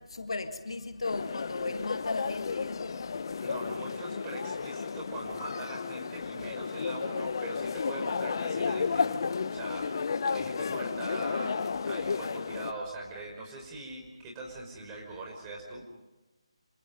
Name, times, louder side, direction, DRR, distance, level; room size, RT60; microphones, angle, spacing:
voice 1, 0.0-2.9, left 3 dB, 60° left, 1.9 m, -36 dB
sound 1, 1.0-12.7, left 5 dB, 45° left, 1.0 m, -33 dB
voice 2, 3.4-9.2 9.5-11.6 11.9-15.9, right 2 dB, 15° right, 5.7 m, -42 dB
29.0 x 27.0 x 5.5 m
figure-of-eight pair, 150°, 3 cm